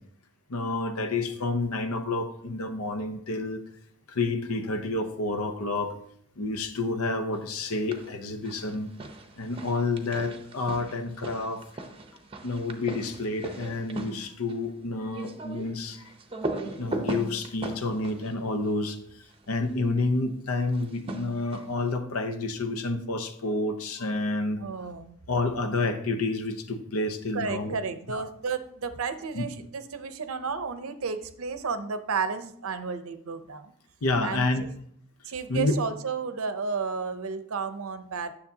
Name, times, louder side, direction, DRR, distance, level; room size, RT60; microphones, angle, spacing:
voice 1, 0.5-3.6 4.1-6.0 6.4-8.9 9.4-11.6 12.4-16.0 16.8-19.0 19.5-24.6 25.3-27.7 28.1-28.2 29.3-29.4 34.0-34.7 35.5-35.8, left 2 dB, 80° left, 8 dB, 0.8 m, -29 dB
sound 1, 7.6-8.2 8.4-19.5 20.7-21.9, right 2 dB, 25° right, 0.7 m, -39 dB
voice 2, 24.6-25.2 27.3-33.7 34.2-34.7 35.2-38.3, right 5 dB, 75° right, 11 dB, 0.6 m, -32 dB
9.5 x 6.8 x 2.8 m, 0.68 s
head